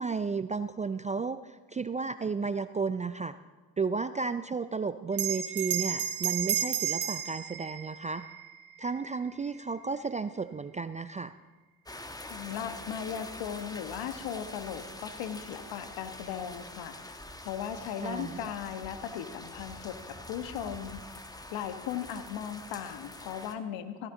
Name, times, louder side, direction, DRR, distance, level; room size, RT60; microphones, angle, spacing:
voice 1, 0.0-3.4 3.8-8.2 8.8-11.3 18.0-18.5, right 4 dB, 15° right, 12 dB, 0.4 m, -33 dB
Bell, 5.1-10.0, right 10 dB, 50° right, 1.6 m, -33 dB
sound 1, 11.9-23.6, left 1 dB, 10° left, 1.2 m, -45 dB
voice 2, 12.3-17.2 17.4-21.0 21.5-24.1, left 9 dB, 65° left, 9 dB, 1.4 m, -37 dB
16.0 x 13.0 x 3.9 m, 1.3 s
hypercardioid pair, 60°, 48 cm